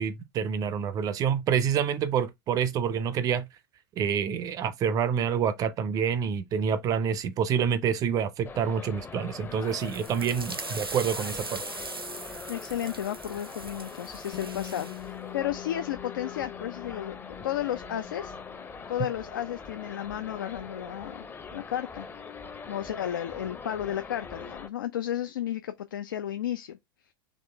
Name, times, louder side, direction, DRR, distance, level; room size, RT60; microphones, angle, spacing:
voice 1, 0.0-3.4 4.0-11.6, right 7 dB, 30° right, 0.5 m, -27 dB
sound 1, 8.4-24.7, left 5 dB, 15° left, 0.6 m, -42 dB
sound 2, 9.6-15.0, right 3 dB, 90° right, 0.5 m, -40 dB
voice 2, 12.5-17.2 17.4-18.3 18.9-21.3 21.5-22.1 22.7-26.7, left 11 dB, 65° left, 0.4 m, -33 dB
Bass guitar, 14.3-20.6, left 17 dB, 40° left, 1.0 m, -45 dB
4.3 x 3.0 x 3.2 m
figure-of-eight pair, 85°, 12 cm